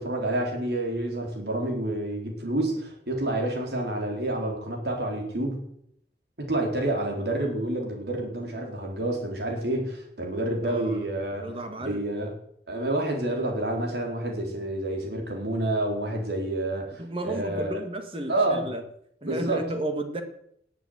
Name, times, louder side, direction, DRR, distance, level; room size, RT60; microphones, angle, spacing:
voice 1, 0.0-5.6 6.4-11.4 11.8-12.3 12.7-17.8 18.3-18.7 19.2-19.6, right 1 dB, 65° right, 1 dB, 4.2 m, -28 dB
voice 2, 10.6-11.1 11.4-12.0 14.5-14.6 17.0-18.8 19.2-20.2, right 1 dB, 30° right, 6 dB, 1.7 m, -33 dB
19.0 x 8.3 x 8.1 m, 0.72 s
head